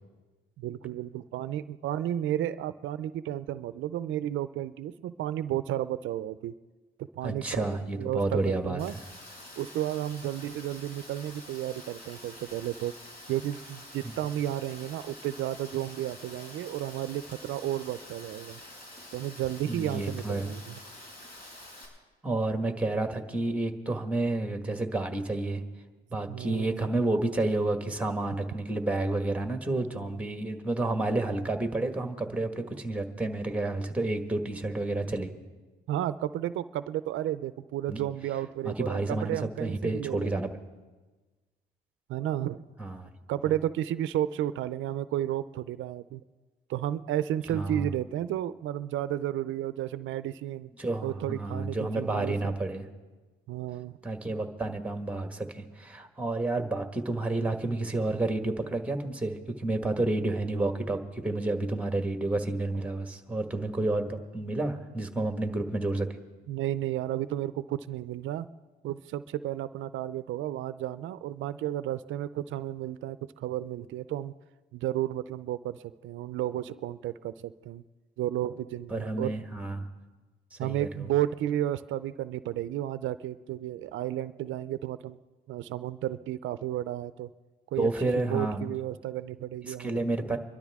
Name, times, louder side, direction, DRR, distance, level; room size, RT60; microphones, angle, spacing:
voice 1, 0.6-6.5 7.1-7.6 7.9-8.9 9.6-12.9 13.3-18.6 19.1-20.8 26.3-26.8 35.9-40.4 42.1-42.7 43.3-46.2 46.7-50.7 51.0-52.5 53.5-54.0 66.5-68.5 68.8-74.3 74.7-75.8 76.0-77.8 78.2-79.3 80.6-85.2 85.5-87.3 87.7-90.1, right 12 dB, 80° right, 14 dB, 0.5 m, -32 dB
voice 2, 7.2-9.0 19.7-20.5 22.2-25.6 26.1-35.3 37.9-38.0 38.6-40.5 42.8-43.1 47.5-47.9 50.8-52.9 54.0-66.1 78.9-79.9 80.5-81.1 87.8-88.7 89.6-90.4, right 2 dB, 5° right, 6 dB, 1.5 m, -30 dB
Rain, 8.8-21.9, left 1 dB, 50° left, 5.9 m, -47 dB
25.0 x 12.0 x 3.5 m, 1.3 s
cardioid pair, 90°, 20 cm